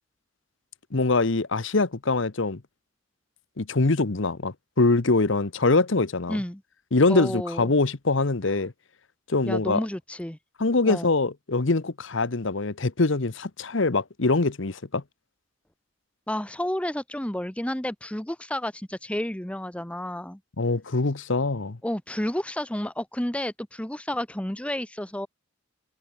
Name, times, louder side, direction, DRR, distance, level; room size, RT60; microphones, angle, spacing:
voice 1, 0.9-2.6 3.6-6.4 6.9-8.7 9.3-9.8 10.6-15.0 20.6-21.8, left 3 dB, 65° left, 1.0 m, -23 dB
voice 2, 6.3-6.6 7.1-7.7 9.5-10.4 10.8-11.1 16.3-20.4 21.8-25.3, left 1 dB, 5° left, 0.8 m, -31 dB
head